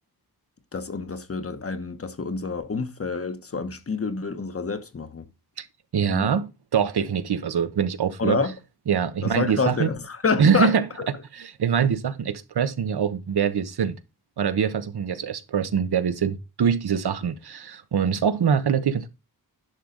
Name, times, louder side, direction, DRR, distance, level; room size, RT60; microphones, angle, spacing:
voice 1, 0.7-5.3 6.1-6.3 8.2-8.5 9.2-11.1, left 4 dB, 35° left, 1.0 m, -28 dB
voice 2, 5.9-8.4 8.9-9.9 10.4-10.8 11.3-14.0 14.4-19.1, right 7 dB, 85° right, 1.1 m, -24 dB
11.0 x 6.4 x 3.9 m
wide cardioid pair, 135°, 38 cm